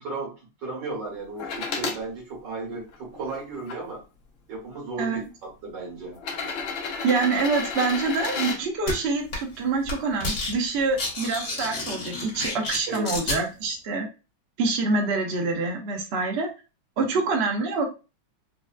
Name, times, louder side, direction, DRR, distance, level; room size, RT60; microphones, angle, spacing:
voice 1, 0.0-4.0 4.5-6.2 12.9-13.2 17.0-17.2, right 3 dB, 70° right, -3 dB, 1.9 m, -35 dB
sound 1, 1.4-2.0 2.7-3.8 4.8-4.9 6.1-8.6 10.5-10.6, left 4 dB, 70° left, 0.7 m, -32 dB
voice 2, 7.0-14.1 14.6-16.5 17.0-17.9, right 3 dB, 85° right, 3 dB, 0.5 m, -26 dB
sound 2, 8.9-9.0 9.3-9.6 9.8-10.5 10.8-13.4, left 2 dB, 55° left, 1.4 m, -30 dB
3.9 x 2.1 x 2.3 m, 0.31 s
omnidirectional pair, 2.0 m